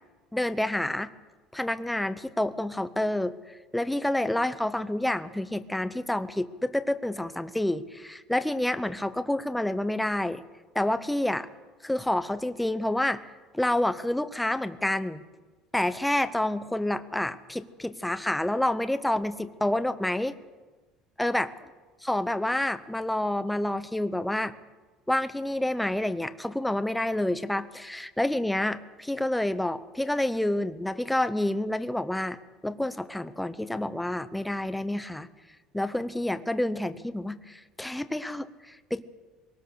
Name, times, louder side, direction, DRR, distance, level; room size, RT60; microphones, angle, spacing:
voice 1, 0.3-1.1 1.5-3.4 3.7-10.4 10.7-11.5 11.8-13.2 13.5-15.2 15.7-20.4 21.2-21.5 22.0-24.5 25.1-32.4 32.6-35.3 35.7-39.0, left 1 dB, 5° left, 11 dB, 0.7 m, -28 dB
22.0 x 18.5 x 6.6 m, 1.3 s
cardioid pair, 145°, 0 cm